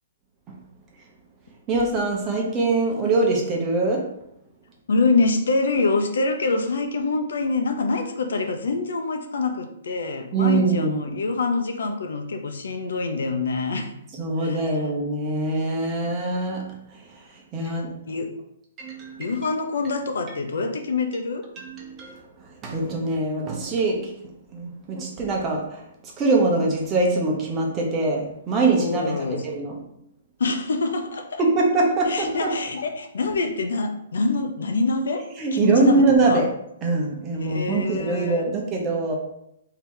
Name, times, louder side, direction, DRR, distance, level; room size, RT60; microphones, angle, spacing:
voice 1, 1.7-4.1 10.3-11.0 14.2-16.7 17.5-17.9 18.8-19.3 21.6-22.2 22.6-24.1 24.5-25.8 26.2-29.7 31.4-32.5 35.4-36.5 36.8-39.2, right 3 dB, 20° right, -1 dB, 0.8 m, -23 dB
voice 2, 4.9-13.9 14.4-14.8 15.9-16.1 17.6-18.3 19.2-21.4 28.7-29.5 30.4-31.4 32.1-35.2 35.5-36.4 37.4-38.5, left 3 dB, 80° left, 5 dB, 0.7 m, -25 dB
3.3 x 2.9 x 4.7 m, 0.78 s
hypercardioid pair, 160°, 0 cm